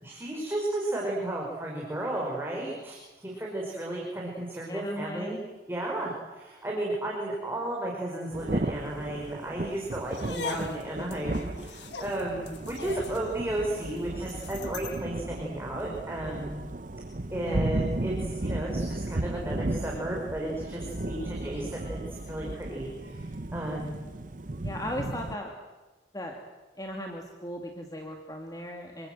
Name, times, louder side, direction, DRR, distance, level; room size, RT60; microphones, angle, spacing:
voice 1, 0.0-5.4 5.7-16.6 17.3-23.9, right 1 dB, 15° right, -3 dB, 5.2 m, -34 dB
voice 2, 4.7-5.4 17.4-17.8 24.6-25.5 26.1-26.3 26.8-29.1, left 1 dB, 20° left, 2 dB, 2.6 m, -37 dB
Thunder / Rain, 8.3-25.4, right 2 dB, 45° right, 0.9 m, -35 dB
sound 1, 10.0-15.1, left 6 dB, 70° left, 1.4 m, -41 dB
26.0 x 25.0 x 7.8 m, 1.2 s
head